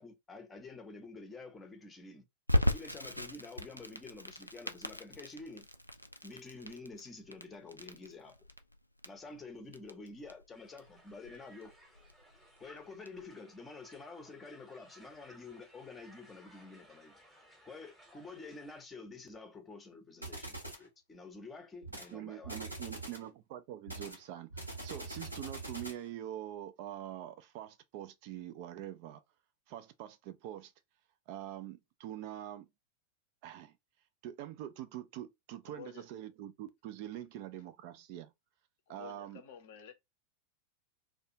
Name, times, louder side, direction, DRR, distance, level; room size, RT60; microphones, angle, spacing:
voice 1, 0.0-2.2 2.7-5.7 6.2-8.4 9.0-11.7 12.6-17.2 17.6-22.6, left 3 dB, 15° left, 0.7 m, -49 dB
Crackle, 2.5-13.2, left 1 dB, 90° left, 0.3 m, -37 dB
Crowd, 10.5-18.8, equal, 10° right, 0.9 m, -61 dB
sound 1, 20.2-20.9 21.8-22.1 22.4-23.3 23.9-26.1, right 2 dB, 85° right, 0.9 m, -43 dB
voice 2, 22.1-24.5 24.8-29.2 29.7-30.7 31.3-32.7 33.4-33.7 34.2-38.3 38.9-39.4, right 12 dB, 45° right, 0.3 m, -44 dB
voice 3, 35.7-36.1 38.9-39.9, left 7 dB, 50° left, 0.6 m, -51 dB
2.4 x 2.3 x 2.8 m
figure-of-eight pair, 90°, 0 cm